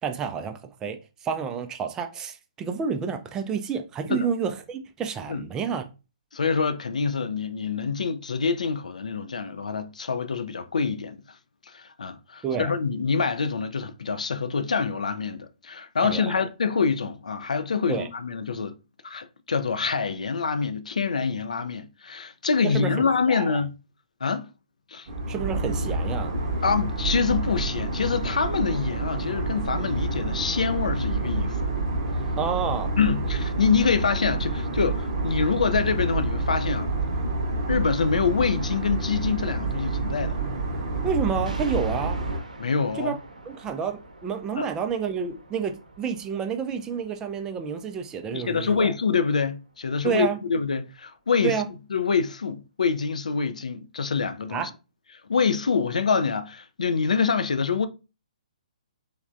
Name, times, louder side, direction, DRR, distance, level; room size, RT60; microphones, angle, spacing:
voice 1, 0.0-5.9 12.4-12.7 16.0-16.4 17.9-18.1 22.6-22.9 23.3-23.6 25.3-26.3 32.4-33.0 41.0-42.2 43.0-43.2 43.5-48.9 50.0-50.4 51.4-51.6 54.5-54.7, right 6 dB, 15° right, 0.3 m, -29 dB
voice 2, 6.3-11.2 11.7-18.8 19.0-23.8 24.2-24.5 24.9-25.1 26.6-31.7 33.0-36.9 37.7-40.4 42.6-43.2 44.6-44.7 48.3-51.6 51.9-54.7 55.3-57.9, left 5 dB, 75° left, 0.3 m, -26 dB
sound 1, 25.1-42.4, right 2 dB, 45° right, 0.7 m, -28 dB
sound 2, 41.5-50.7, right 2 dB, 85° right, 0.6 m, -47 dB
3.2 x 2.1 x 2.5 m
figure-of-eight pair, 130°, 4 cm